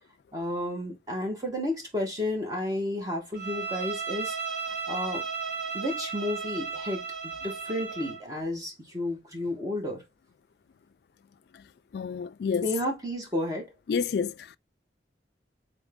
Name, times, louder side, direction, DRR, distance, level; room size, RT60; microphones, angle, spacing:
voice 1, 0.3-4.4 4.9-5.3 5.7-7.0 7.4-10.0 12.6-13.7, left 1 dB, 20° right, 1.2 m, -32 dB
Bowed string instrument, 3.3-8.3, right 5 dB, 70° right, 1.4 m, -34 dB
voice 2, 11.9-12.7 13.9-14.6, left 6 dB, 60° left, 0.3 m, -29 dB
3.9 x 3.6 x 3.5 m
head